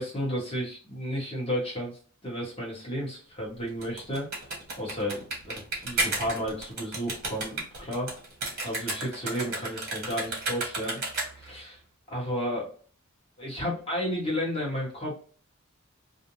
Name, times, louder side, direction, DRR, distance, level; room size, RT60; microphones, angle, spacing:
voice 1, 0.0-4.3 4.8-8.1 8.6-11.0 11.4-11.8 12.1-12.7 13.4-15.1, equal, 25° left, -4 dB, 1.0 m, -32 dB
sound 1, 3.7-11.6, right 2 dB, 45° right, 1.1 m, -33 dB
2.5 x 2.1 x 2.8 m, 0.43 s
head